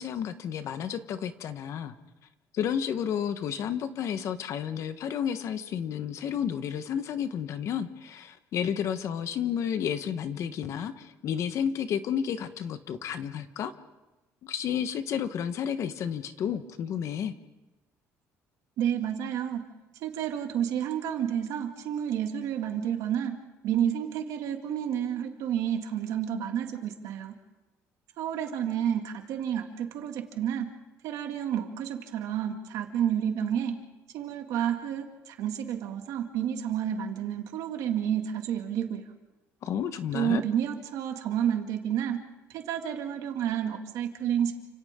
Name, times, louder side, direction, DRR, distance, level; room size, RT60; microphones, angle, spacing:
voice 1, 0.0-1.9 2.5-13.7 14.5-17.3 39.6-40.4, left 8 dB, 60° left, 10 dB, 1.2 m, -31 dB
voice 2, 18.8-19.6 20.0-23.3 23.6-27.4 28.2-30.7 31.0-33.8 34.1-39.0 40.1-42.2 42.5-44.5, right 9 dB, 85° right, 4 dB, 2.3 m, -30 dB
29.5 x 26.5 x 3.8 m, 1.1 s
cardioid pair, 145°, 6 cm